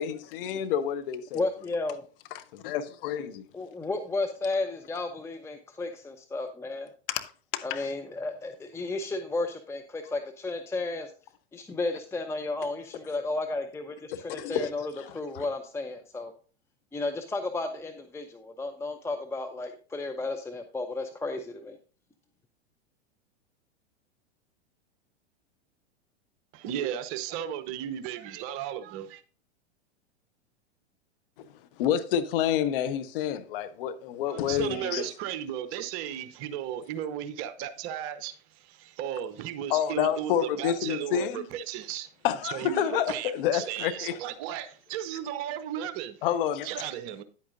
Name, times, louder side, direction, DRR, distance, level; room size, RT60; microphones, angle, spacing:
voice 1, 0.0-1.4 2.3-3.4 7.1-7.9 14.1-14.7 15.0-15.5 31.8-35.1 39.7-41.5 42.2-44.2 46.2-46.7, left 9 dB, 55° left, 1.0 m, -29 dB
voice 2, 1.3-2.0 3.5-6.9 7.6-11.1 11.5-16.3 16.9-21.8, left 2 dB, 10° left, 0.6 m, -33 dB
voice 3, 26.5-29.2 34.3-42.1 42.4-46.2 46.6-47.2, right 10 dB, 40° right, 0.9 m, -35 dB
9.9 x 8.5 x 2.6 m
hypercardioid pair, 100°, 33 cm